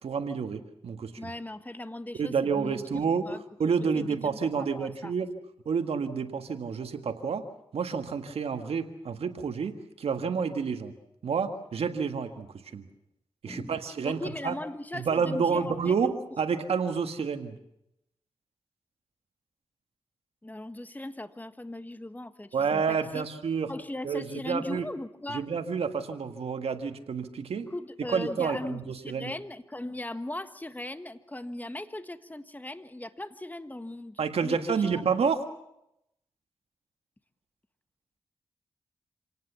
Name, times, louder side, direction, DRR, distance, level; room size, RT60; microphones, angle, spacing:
voice 1, 0.0-1.1 2.2-3.3 3.6-5.3 5.6-7.4 7.7-10.9 11.2-12.5 12.7-12.8 13.4-14.5 14.9-17.5 22.5-23.7 24.0-24.8 25.3-27.7 28.1-29.3 34.2-35.4, right 6 dB, 80° right, 7 dB, 1.7 m, -29 dB
voice 2, 1.2-2.8 3.2-3.4 3.8-5.1 13.5-16.0 20.4-23.2 23.7-25.5 27.6-35.0, left 1 dB, 15° left, 11 dB, 1.6 m, -39 dB
26.5 x 18.5 x 7.0 m, 0.80 s
cardioid pair, 55°, 10 cm